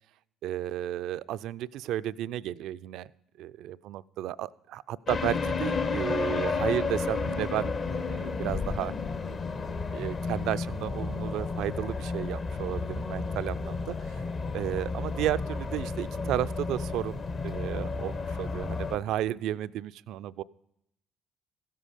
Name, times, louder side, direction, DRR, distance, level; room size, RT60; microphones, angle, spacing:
voice 1, 0.4-3.1 3.4-8.9 9.9-14.2 14.5-20.4, right 12 dB, 70° right, 16 dB, 0.3 m, -33 dB
sound 1, 5.1-19.0, left 4 dB, 45° left, 1.0 m, -32 dB
15.5 x 7.6 x 5.0 m, 0.79 s
hypercardioid pair, 55°, 0 cm